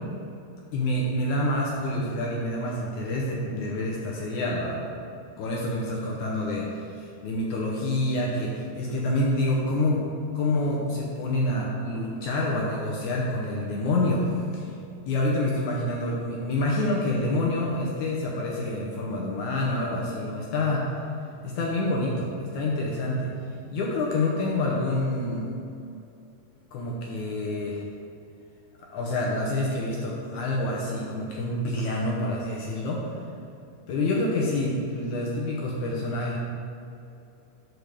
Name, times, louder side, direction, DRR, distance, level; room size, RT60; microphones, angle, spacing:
voice 1, 0.7-4.9 5.4-10.0 10.3-14.7 15.1-20.9 21.4-23.3 23.7-25.5 26.7-27.9 28.8-33.1 33.9-36.4, left 1 dB, 70° left, -3 dB, 2.0 m, -27 dB
6.6 x 4.6 x 6.8 m, 2.7 s
omnidirectional pair, 4.0 m